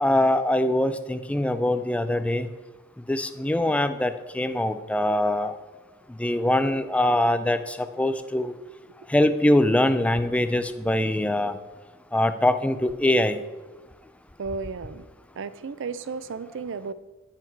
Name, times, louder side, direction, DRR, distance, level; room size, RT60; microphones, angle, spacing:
voice 1, 0.0-2.5 3.1-5.5 6.2-8.5 9.1-11.6 12.1-13.4, left 1 dB, 5° left, 11 dB, 0.3 m, -23 dB
voice 2, 14.4-15.0 15.4-16.9, right 4 dB, 60° right, 14 dB, 0.4 m, -33 dB
9.0 x 5.7 x 4.6 m, 1.2 s
head